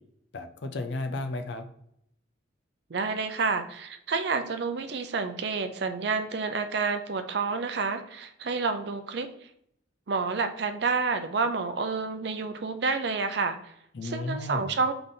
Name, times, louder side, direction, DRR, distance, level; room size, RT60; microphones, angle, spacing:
voice 1, 0.3-1.6 13.9-14.7, left 2 dB, 65° left, 7 dB, 0.5 m, -33 dB
voice 2, 2.9-9.3 10.1-13.6 14.0-14.9, right 4 dB, 60° right, 8 dB, 0.5 m, -29 dB
4.0 x 3.4 x 3.7 m, 0.74 s
head